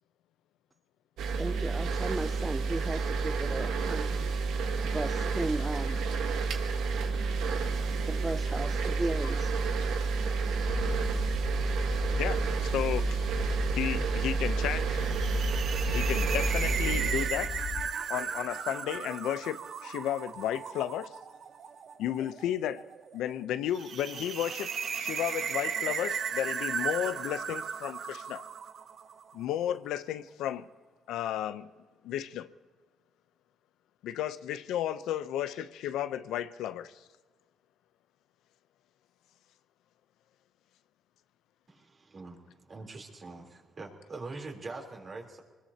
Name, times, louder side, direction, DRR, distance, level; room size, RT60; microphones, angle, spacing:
sound 1, 1.2-17.3, right 4 dB, 85° right, 1.4 m, -30 dB
voice 1, 1.4-4.2 4.8-6.1 8.1-9.6, right 2 dB, 15° right, 0.5 m, -35 dB
sound 2, 10.7-17.9, left 9 dB, 70° left, 1.1 m, -39 dB
voice 2, 12.2-13.3 13.7-15.3 15.9-17.6 18.1-21.1 22.0-22.8 23.1-28.4 29.3-30.7 31.1-31.7 32.0-32.5 34.0-37.0, left 11 dB, 90° left, 0.6 m, -33 dB
sound 3, 15.0-29.3, right 7 dB, 60° right, 0.9 m, -36 dB
voice 3, 41.7-45.4, right 3 dB, 40° right, 3.5 m, -43 dB
24.5 x 20.5 x 2.9 m
cardioid pair, 90°, 0 cm